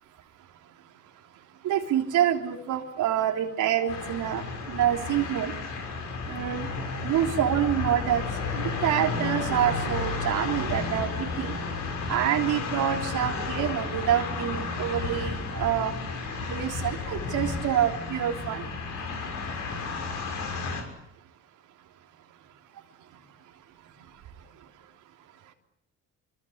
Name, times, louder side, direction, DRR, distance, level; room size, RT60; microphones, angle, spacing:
voice 1, 1.6-4.4 4.7-5.5 6.3-6.7 7.0-8.2 8.5-11.5 12.1-15.9 16.5-18.6, right 10 dB, 90° right, 2 dB, 3.5 m, -27 dB
sound 1, 3.9-20.8, left 4 dB, 80° left, 6.5 m, -32 dB
25.5 x 25.5 x 8.0 m, 0.76 s
cardioid pair, 90°, 30 cm